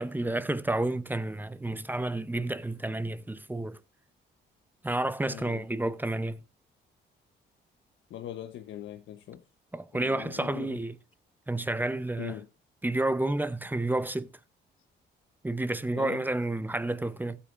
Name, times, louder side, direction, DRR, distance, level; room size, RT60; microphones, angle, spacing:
voice 1, 0.0-3.8 4.8-6.4 9.7-11.0 11.5-12.4 12.8-14.3 15.4-17.4, right 2 dB, 10° right, 0.7 m, -30 dB
voice 2, 5.3-5.6 8.1-9.4 9.9-10.8 12.2-12.5 16.0-16.2, left 11 dB, 75° left, 1.0 m, -40 dB
15.0 x 8.5 x 2.5 m
cardioid pair, 90°, 20 cm